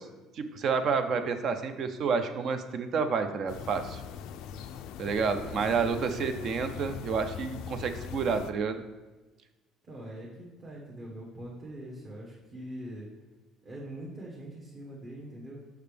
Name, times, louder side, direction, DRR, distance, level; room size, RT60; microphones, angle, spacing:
voice 1, 0.3-4.0 5.0-8.8, right 5 dB, 45° right, 9 dB, 0.5 m, -29 dB
sound 1, 3.5-8.5, left 7 dB, 70° left, 0.3 m, -41 dB
voice 2, 5.0-6.3 9.8-13.1 13.6-15.6, right 1 dB, 30° right, -4 dB, 1.1 m, -43 dB
6.5 x 5.8 x 3.4 m, 1.1 s
cardioid pair, 150°, 0 cm